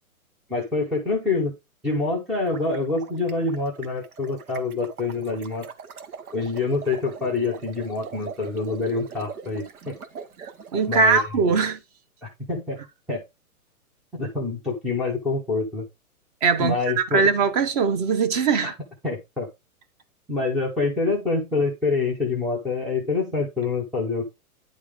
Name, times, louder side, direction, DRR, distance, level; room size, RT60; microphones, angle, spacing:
voice 1, 0.5-1.5 1.8-5.6 6.3-9.9 10.9-11.2 12.5-12.8 13.1-13.2 14.1-15.9 16.6-17.2 18.6-18.7 19.0-19.5 20.3-24.2, left 3 dB, ahead, 0.6 m, -26 dB
sound 1, 2.5-10.9, right 6 dB, 80° right, 1.6 m, -41 dB
voice 2, 10.4-11.8 16.4-16.8 17.1-18.7, right 5 dB, 25° right, 1.0 m, -21 dB
10.0 x 3.4 x 4.9 m
hypercardioid pair, 155°, 44 cm